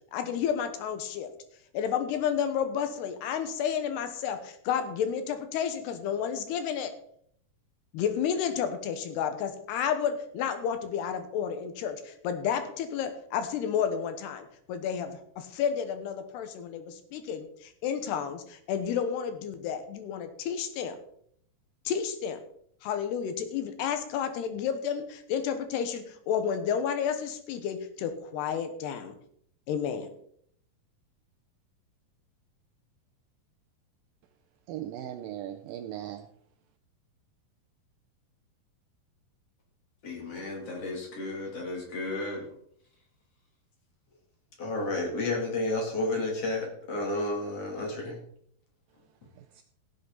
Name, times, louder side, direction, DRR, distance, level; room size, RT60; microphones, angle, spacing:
voice 1, 0.1-1.3 1.7-6.9 7.9-21.0 21.9-22.4 22.8-29.2 29.7-30.1, left 8 dB, 85° left, 8 dB, 3.2 m, -31 dB
voice 2, 34.7-36.3 49.4-49.6, right 11 dB, 80° right, 7 dB, 2.1 m, -38 dB
voice 3, 40.0-42.5 44.6-48.2, left 2 dB, 40° left, 0 dB, 3.3 m, -32 dB
16.5 x 8.1 x 4.0 m, 0.66 s
omnidirectional pair, 4.7 m